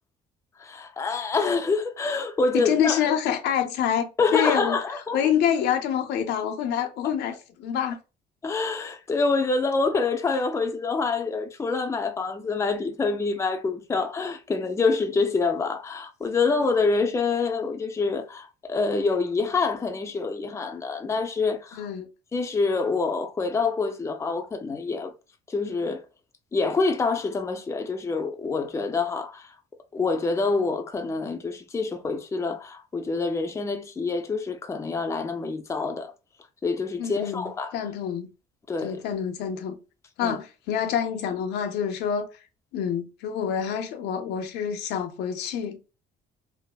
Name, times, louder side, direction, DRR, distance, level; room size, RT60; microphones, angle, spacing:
voice 1, 0.6-3.0 4.2-5.2 8.4-21.9 22.3-25.1 25.5-26.0 26.5-29.5 29.9-36.1 36.6-37.7 38.7-39.0 40.2-40.4, left 4 dB, 15° left, 0.4 m, -26 dB
voice 2, 2.5-4.8 5.1-8.0 21.8-22.1 37.0-38.3 38.8-39.8 40.2-42.3 42.7-45.8, left 8 dB, 80° left, 0.6 m, -27 dB
3.2 x 2.0 x 2.2 m
cardioid pair, 110°, 17 cm